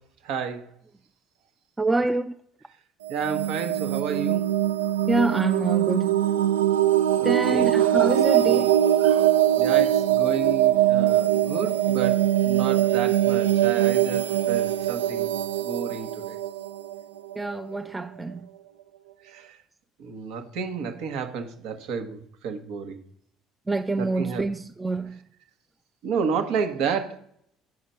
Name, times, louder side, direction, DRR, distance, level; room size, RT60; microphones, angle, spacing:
voice 1, 0.2-0.7 3.1-4.5 7.2-7.7 8.4-8.6 9.0-15.3 15.6-16.4 19.2-19.6 20.0-23.0 24.0-24.4 26.0-27.2, right 6 dB, 70° right, 1.3 m, -31 dB
voice 2, 1.8-2.3 5.1-6.2 7.2-8.8 17.4-18.4 23.7-25.2, right 2 dB, 15° right, 0.5 m, -26 dB
sound 1, 3.0-17.7, right 12 dB, 90° right, 0.4 m, -22 dB
9.4 x 5.0 x 5.6 m
hypercardioid pair, 65°, 0 cm